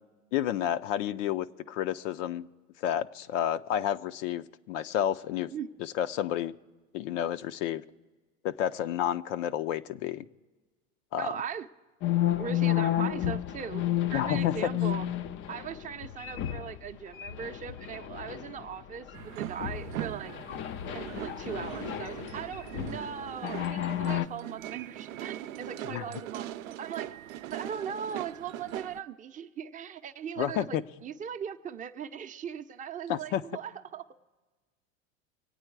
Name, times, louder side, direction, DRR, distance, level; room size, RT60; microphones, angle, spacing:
voice 1, 0.3-2.5 2.8-5.5 5.8-6.5 6.9-7.8 8.4-10.2 11.1-11.3 14.1-14.7 25.9-26.0 30.4-30.8 33.1-33.4, left 10 dB, 65° left, 11 dB, 0.7 m, -30 dB
voice 2, 11.2-11.7 12.3-15.1 15.5-20.3 20.9-34.0, right 8 dB, 20° right, 6 dB, 0.6 m, -39 dB
sound 1, 12.0-16.9 17.2-18.7 19.1-19.2 19.6-23.1 23.4-24.3, left 12 dB, 30° left, 0.4 m, -31 dB
sound 2, 19.1-29.0, right 12 dB, 85° right, 0.6 m, -41 dB
25.0 x 8.9 x 4.6 m, 1.3 s
hypercardioid pair, 110°, 40 cm